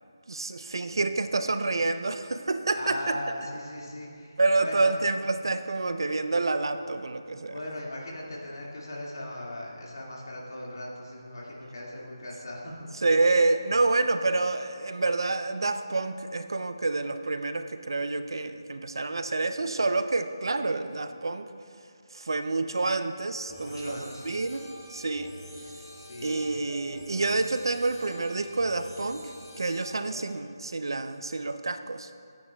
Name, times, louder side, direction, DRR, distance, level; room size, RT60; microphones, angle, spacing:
voice 1, 0.3-3.2 4.4-7.5 13.0-21.5 22.1-25.3 26.2-29.2 29.6-32.1, right 3 dB, 70° right, 9 dB, 0.5 m, -28 dB
voice 2, 2.7-4.9 7.5-12.9 23.6-24.3 25.8-26.6, left 1 dB, 65° left, -3 dB, 2.0 m, -38 dB
sound 1, 23.5-30.3, equal, 5° left, 1.6 m, -46 dB
11.0 x 9.7 x 2.3 m, 2.4 s
figure-of-eight pair, 165°, 2 cm